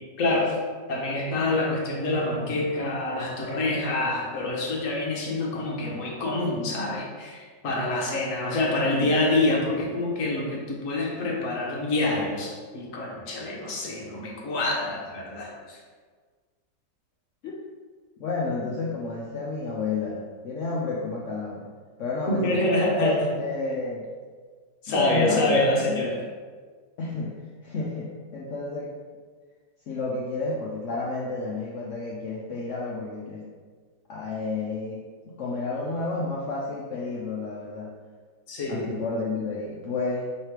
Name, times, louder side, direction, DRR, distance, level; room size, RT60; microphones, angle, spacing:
voice 1, 0.2-0.5 0.9-15.8 22.3-23.2 24.8-26.2 38.5-39.0, left 2 dB, 55° left, -2 dB, 1.1 m, -26 dB
voice 2, 18.2-21.7 22.0-22.6 23.0-24.1 24.9-26.0 27.0-27.3 27.6-28.9 29.9-33.5 34.1-37.9 38.6-40.3, left 3 dB, 85° left, -4 dB, 0.6 m, -30 dB
3.2 x 3.2 x 4.5 m, 1.6 s
omnidirectional pair, 1.9 m